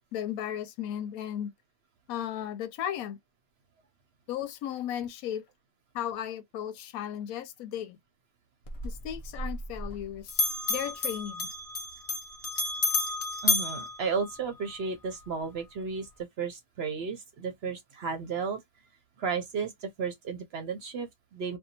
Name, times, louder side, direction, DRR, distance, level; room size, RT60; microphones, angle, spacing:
voice 1, 0.1-1.5 2.1-3.2 4.3-5.4 5.9-8.0 8.8-10.4 10.7-11.5, left 10 dB, 90° left, 1.0 m, -35 dB
Bell, 8.7-10.0 10.3-14.8, left 3 dB, 45° left, 0.4 m, -31 dB
voice 2, 13.4-16.1 16.4-18.6 19.2-21.6, right 5 dB, 60° right, 0.7 m, -33 dB
2.6 x 2.2 x 2.8 m
omnidirectional pair, 1.4 m